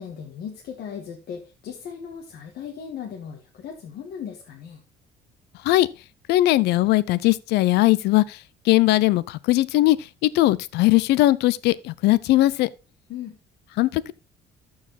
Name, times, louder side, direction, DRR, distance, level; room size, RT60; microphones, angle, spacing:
voice 1, 0.0-4.8 13.1-13.4, left 7 dB, 65° left, 1.5 m, -37 dB
voice 2, 6.3-12.7 13.8-14.1, left 16 dB, 80° left, 0.6 m, -20 dB
13.5 x 4.8 x 4.0 m
cardioid pair, 110°, 17 cm